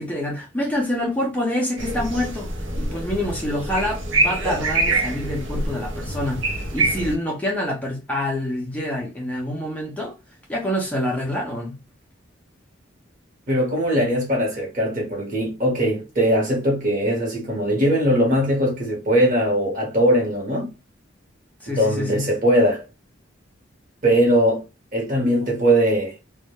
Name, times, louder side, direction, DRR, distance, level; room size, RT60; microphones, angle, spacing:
voice 1, 0.0-10.1 10.5-11.8 21.6-22.3, left 1 dB, 10° left, 0.5 m, -26 dB
sound 1, 1.8-7.1, right 2 dB, 75° right, 0.6 m, -25 dB
voice 2, 13.5-20.7 21.7-22.8 24.0-24.6 24.9-26.1, equal, 45° right, 1.0 m, -20 dB
2.2 x 2.1 x 2.8 m
head